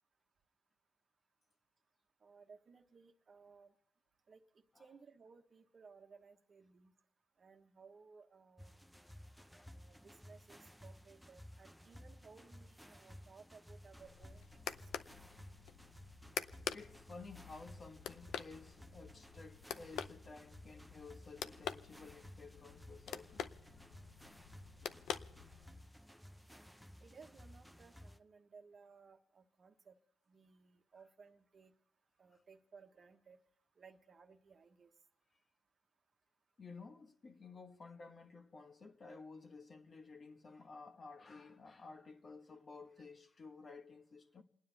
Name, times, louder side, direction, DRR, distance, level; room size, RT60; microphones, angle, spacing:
voice 1, 2.2-3.7 4.3-4.4 4.8-6.9 7.4-8.7 9.7-15.1 27.0-30.0 30.3-31.7 32.2-33.4 33.8-34.9, right 5 dB, 45° right, 1.3 m, -61 dB
sound 1, 8.6-28.2, equal, ahead, 0.8 m, -57 dB
sound 2, 14.0-25.9, left 9 dB, 80° left, 0.6 m, -47 dB
voice 2, 15.2-15.5 16.7-23.5 24.5-24.6 36.6-44.4, left 4 dB, 35° left, 1.2 m, -54 dB
29.0 x 9.7 x 4.1 m
cardioid pair, 90°, 0 cm